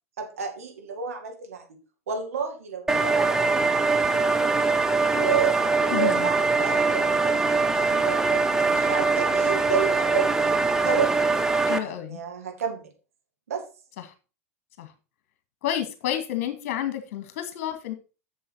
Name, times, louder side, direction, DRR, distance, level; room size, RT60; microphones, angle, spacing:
voice 1, 0.2-1.7 2.1-4.4 5.1-10.5 10.8-11.1 11.8-12.9 13.5-13.7, right 7 dB, 70° right, 4 dB, 2.0 m, -31 dB
sound 1, 2.9-11.8, right 3 dB, 5° right, 0.9 m, -22 dB
voice 2, 5.9-6.3 11.7-12.2 14.8-14.9 15.6-17.9, left 11 dB, 55° left, 8 dB, 2.0 m, -30 dB
7.7 x 7.0 x 4.2 m, 0.33 s
figure-of-eight pair, 90°, 8 cm